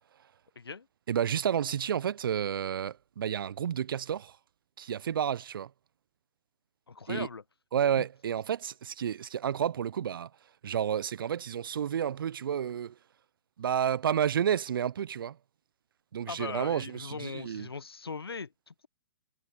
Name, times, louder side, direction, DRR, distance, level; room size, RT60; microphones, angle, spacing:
voice 1, 0.6-0.9 6.9-7.4 16.3-18.9, left 5 dB, 80° left, 1.0 m, -39 dB
voice 2, 1.1-4.3 4.8-5.7 7.1-7.3 7.7-10.3 10.6-12.9 13.6-15.4 16.1-17.7, right 9 dB, 65° right, 0.7 m, -30 dB
figure-of-eight pair, 120°, 13 cm